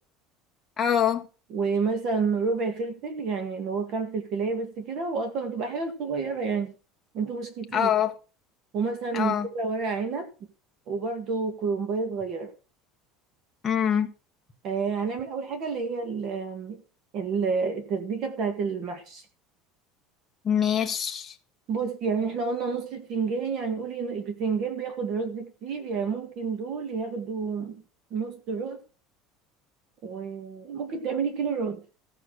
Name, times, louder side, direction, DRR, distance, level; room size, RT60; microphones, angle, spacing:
voice 1, 0.8-1.3 7.7-8.1 9.1-9.5 13.6-14.1 20.4-21.4, left 9 dB, 15° left, 1.2 m, -24 dB
voice 2, 1.5-6.7 7.1-7.9 8.7-10.3 10.9-12.5 14.6-16.8 17.1-19.3 21.7-27.8 28.1-28.8 30.0-31.8, right 5 dB, 35° right, 1.8 m, -29 dB
15.0 x 5.9 x 6.4 m
cardioid pair, 180°, 0 cm